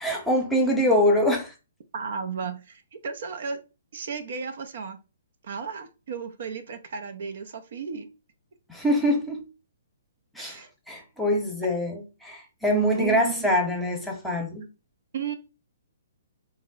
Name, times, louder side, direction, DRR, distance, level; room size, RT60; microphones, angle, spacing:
voice 1, 0.0-1.5 8.7-9.4 10.3-14.6, equal, 5° left, 0.8 m, -24 dB
voice 2, 1.9-3.6 3.9-5.0 5.4-8.1 10.4-10.7 13.0-13.5 15.1-15.3, right 6 dB, 60° right, 0.5 m, -34 dB
3.5 x 2.1 x 3.8 m
figure-of-eight pair, 130°, 0 cm